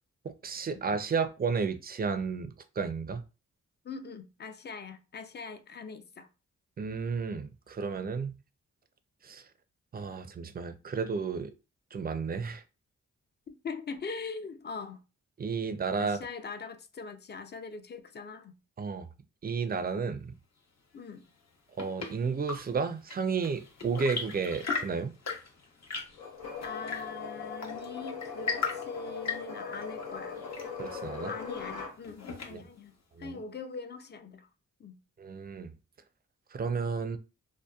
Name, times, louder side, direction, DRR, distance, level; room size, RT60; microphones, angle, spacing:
voice 1, 0.2-3.2 6.8-8.3 9.2-9.4 9.9-11.5 11.9-12.6 15.4-16.2 18.8-19.1 19.4-20.3 21.8-25.1 30.8-31.3 32.5-32.6 33.2-33.4 35.2-35.7 36.5-37.2, right 5 dB, 30° right, 0.4 m, -32 dB
voice 2, 3.8-6.3 13.5-15.0 16.0-18.5 20.9-21.3 26.6-30.4 31.3-34.5 34.8-35.0, left 4 dB, 35° left, 0.4 m, -42 dB
Chirp tweet / Engine / Tap, 21.3-32.9, left 5 dB, 55° left, 0.8 m, -39 dB
sound 1, 26.2-31.9, left 5 dB, 90° left, 0.8 m, -40 dB
2.7 x 2.1 x 2.2 m
cardioid pair, 60°, 32 cm